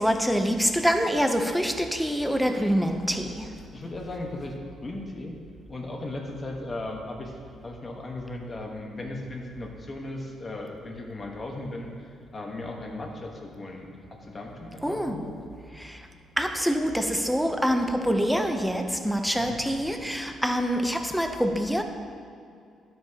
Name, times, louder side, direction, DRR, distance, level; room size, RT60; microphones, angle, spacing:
voice 1, 0.0-3.3 14.8-15.2 16.4-21.8, equal, ahead, 5 dB, 0.6 m, -25 dB
voice 2, 3.7-4.5 4.8-5.3 5.7-7.4 7.6-13.9 14.2-15.3 19.4-19.6, left 2 dB, 25° left, 1 dB, 1.2 m, -37 dB
12.0 x 7.7 x 2.9 m, 2.4 s
cardioid pair, 130°, 0 cm